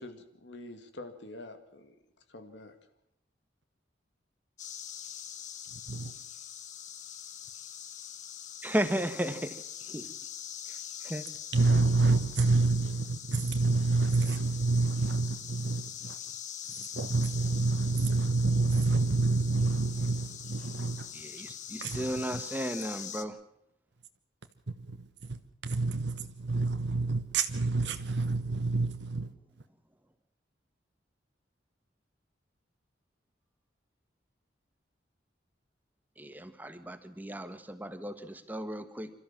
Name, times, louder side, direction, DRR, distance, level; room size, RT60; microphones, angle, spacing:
voice 1, 0.0-2.0 2.3-2.7, left 2 dB, 75° left, 2.2 m, -46 dB
sound 1, 4.6-23.3, left 9 dB, 40° left, 1.2 m, -43 dB
voice 2, 5.7-6.1 11.5-16.2 16.8-21.1 21.8-22.4 24.7-29.3, right 3 dB, 70° right, 1.2 m, -28 dB
voice 3, 8.6-9.6 9.9-10.3 10.7-10.8 11.0-11.2 21.1-23.4 36.2-39.2, right 1 dB, 10° right, 1.4 m, -35 dB
27.0 x 13.5 x 7.4 m
head